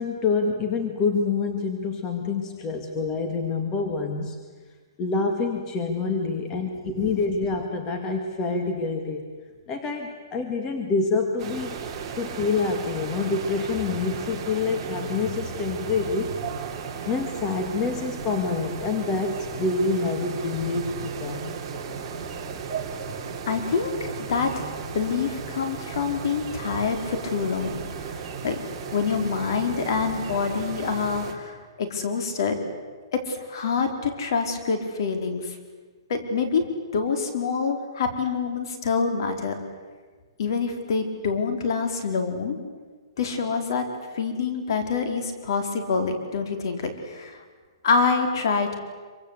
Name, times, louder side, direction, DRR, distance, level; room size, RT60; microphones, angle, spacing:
voice 1, 0.0-4.4 5.0-9.3 9.7-11.9 12.2-16.6 17.0-21.6, left 4 dB, 20° left, 4 dB, 2.1 m, -27 dB
sound 1, 11.4-31.3, right 6 dB, 20° right, 3.2 m, -35 dB
voice 2, 23.5-24.6 24.9-28.1 28.4-28.6 28.9-32.6 33.1-35.6 36.1-36.6 36.9-39.6 40.4-42.6 43.2-43.8 44.1-47.4 47.8-48.7, left 5 dB, 55° left, 6 dB, 4.3 m, -26 dB
26.0 x 25.0 x 8.3 m, 1.4 s
hypercardioid pair, 165°, 3 cm